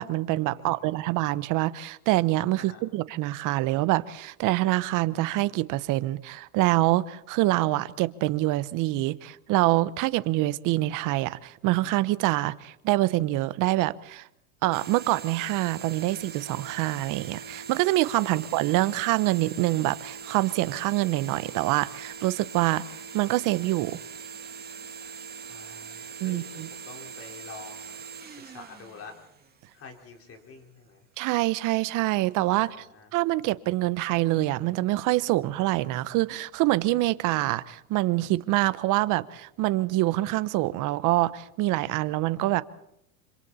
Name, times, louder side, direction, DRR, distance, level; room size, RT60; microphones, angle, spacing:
voice 1, 0.0-14.3 14.6-22.8 23.1-24.0 26.2-26.7 31.2-32.8 33.1-42.6, right 17 dB, 45° right, 1.0 m, -25 dB
sound 1, 14.7-29.9, right 6 dB, 20° right, 2.4 m, -42 dB
voice 2, 25.5-29.1 29.7-31.0 32.6-33.1, left 4 dB, 30° left, 4.7 m, -47 dB
26.5 x 26.5 x 4.3 m
supercardioid pair, 110°, 43 cm